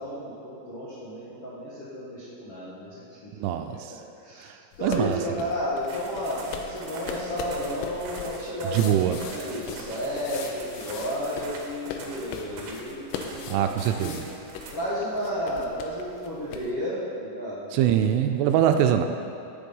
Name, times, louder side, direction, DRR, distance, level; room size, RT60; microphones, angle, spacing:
voice 1, 0.0-3.3 3.9-4.0 4.2-4.4 4.8-13.0 13.3-14.3 14.7-17.8 18.5-18.6, equal, 60° left, -10 dB, 1.4 m, -32 dB
voice 2, 3.4-3.9 4.4-4.6 4.8-5.2 8.7-9.2 13.5-14.2 17.7-19.1, right 10 dB, 85° right, 6 dB, 2.9 m, -23 dB
sound 1, 4.7-16.7, left 6 dB, 85° left, 3.2 m, -40 dB
sound 2, 5.9-14.7, right 3 dB, 65° right, 2.3 m, -43 dB
16.5 x 6.6 x 5.3 m, 2.7 s
omnidirectional pair, 5.7 m